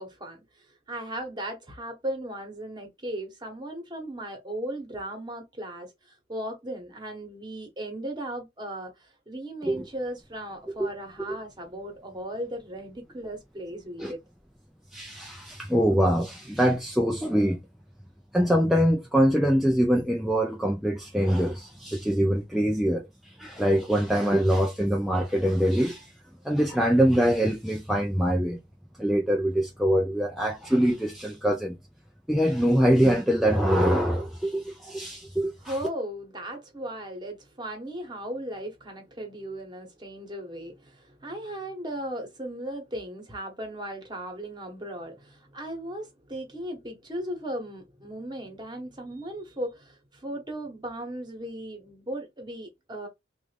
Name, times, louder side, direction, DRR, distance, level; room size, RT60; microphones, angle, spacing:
voice 1, 0.0-14.2 35.6-53.1, right 1 dB, 25° right, 1.0 m, -37 dB
voice 2, 14.9-17.6 18.3-26.1 26.4-28.6 29.0-31.8 32.3-35.8, equal, ahead, 0.3 m, -24 dB
3.3 x 2.4 x 3.3 m
head